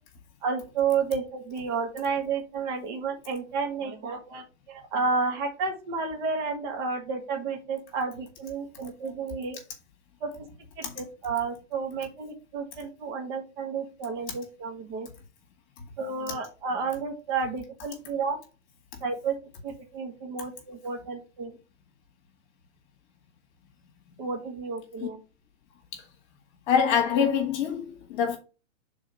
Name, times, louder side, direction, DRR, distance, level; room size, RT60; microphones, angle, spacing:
voice 1, 0.4-9.6 10.2-10.5 10.8-15.1 16.0-18.4 19.0-19.4 19.6-21.6 24.2-25.2, right 5 dB, 40° right, 1.5 m, -31 dB
voice 2, 26.7-28.4, left 7 dB, 35° left, 1.7 m, -25 dB
5.7 x 3.9 x 5.4 m
hypercardioid pair, 160°, 38 cm